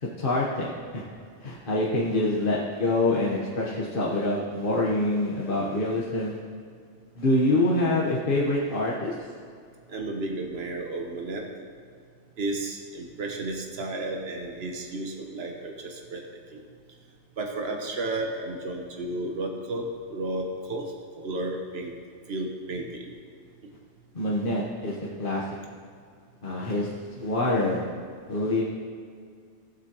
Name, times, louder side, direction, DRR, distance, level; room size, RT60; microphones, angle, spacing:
voice 1, 0.2-1.0 1.4-6.4 7.2-9.1 24.1-25.4 26.4-26.9 27.2-27.8 28.3-28.6, left 2 dB, 50° left, -5 dB, 1.3 m, -25 dB
voice 2, 9.9-11.4 12.4-16.2 16.5-16.6 17.4-19.8 20.1-20.8 21.1-21.9 22.3-23.1, right 2 dB, 60° right, 1 dB, 1.4 m, -32 dB
18.5 x 7.9 x 3.0 m, 2.2 s
omnidirectional pair, 1.2 m